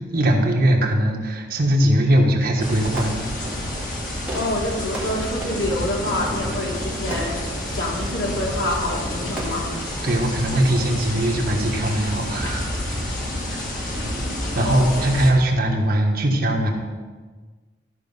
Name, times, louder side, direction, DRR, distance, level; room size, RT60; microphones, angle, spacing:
voice 1, 0.0-3.2 5.0-5.1 10.0-12.8 13.5-13.6 14.5-16.7, right 1 dB, 55° right, 1 dB, 1.4 m, -20 dB
Fireworks, 2.5-10.6, right 1 dB, 10° right, 2.1 m, -38 dB
sound 1, 2.6-15.3, left 1 dB, 45° left, 2.0 m, -29 dB
voice 2, 4.3-7.4 7.7-9.7 14.5-14.9, left 1 dB, 70° left, -3 dB, 2.6 m, -27 dB
13.0 x 5.3 x 5.4 m, 1.4 s
head